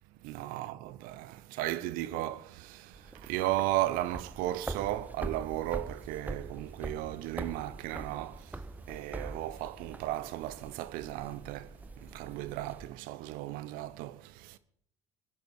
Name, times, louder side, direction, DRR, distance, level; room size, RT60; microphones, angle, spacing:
voice 1, 0.2-8.6 8.9-14.6, right 15 dB, 65° right, 1.0 m, -35 dB
sound 1, 2.9-12.9, right 2 dB, 10° right, 0.9 m, -44 dB
22.0 x 10.5 x 4.9 m
hypercardioid pair, 70°, 15 cm